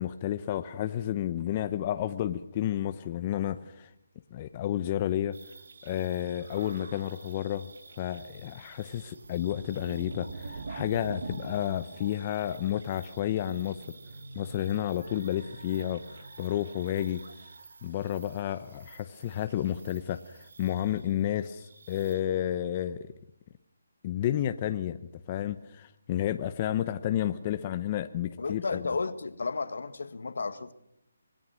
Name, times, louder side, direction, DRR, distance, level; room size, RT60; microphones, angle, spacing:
voice 1, 0.0-3.9 4.3-5.4 5.8-7.7 8.0-13.8 14.4-17.2 17.8-23.1 24.0-25.0 25.3-28.8, left 11 dB, 30° left, 10 dB, 0.8 m, -31 dB
sound 1, 5.3-22.2, right 3 dB, 70° right, 1.6 m, -46 dB
voice 2, 28.4-30.7, left 4 dB, 75° left, 11 dB, 1.7 m, -33 dB
26.0 x 19.0 x 6.3 m, 0.77 s
hypercardioid pair, 160°, 0 cm